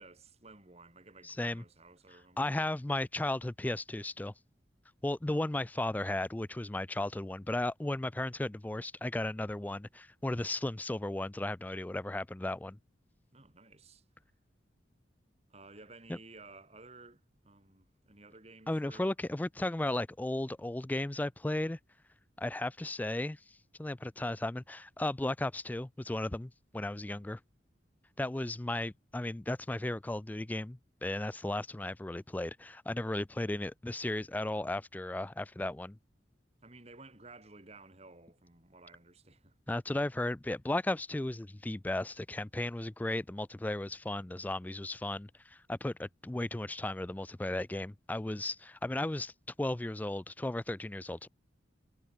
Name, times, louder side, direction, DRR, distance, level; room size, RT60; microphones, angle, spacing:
voice 1, 0.0-2.6 13.3-14.0 15.5-19.1 27.0-27.3 36.6-39.5 48.4-48.5, right 3 dB, 35° right, 3.2 m, -55 dB
voice 2, 1.2-1.6 2.4-4.3 5.0-12.8 18.7-21.8 22.4-27.4 28.2-36.0 39.7-49.3 49.6-51.3, left 1 dB, 10° left, 0.3 m, -35 dB
head